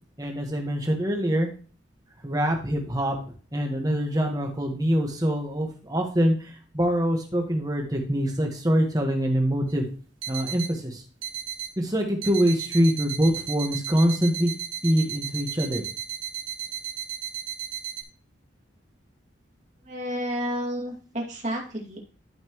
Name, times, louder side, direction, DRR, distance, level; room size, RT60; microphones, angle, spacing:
voice 1, 0.2-1.5 2.2-3.1 3.5-9.9 10.3-11.0 11.8-14.5 14.8-15.8, equal, 20° right, 3 dB, 1.4 m, -24 dB
sound 1, 9.7-9.8 10.2-10.7 11.2-11.7 12.2-18.0, right 10 dB, 80° right, 1.5 m, -35 dB
voice 2, 19.9-22.0, equal, 35° right, -1 dB, 2.4 m, -31 dB
12.5 x 5.8 x 3.1 m, 0.37 s
head